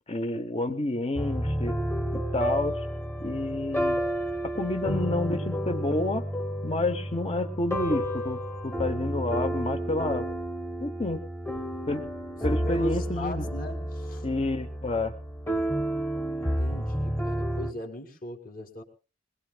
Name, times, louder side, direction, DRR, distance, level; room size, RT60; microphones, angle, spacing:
voice 1, 0.1-1.8 2.1-2.9 3.2-4.0 4.4-6.3 6.6-10.3 10.8-11.2 11.9-12.0 12.4-13.5 14.2-15.1, left 2 dB, 30° left, 8 dB, 0.9 m, -29 dB
sound 1, 1.2-17.7, equal, 15° left, 1.2 m, -31 dB
voice 2, 12.5-14.3 16.3-18.8, left 1 dB, 45° left, 5 dB, 2.4 m, -38 dB
22.0 x 20.5 x 2.3 m, 0.33 s
head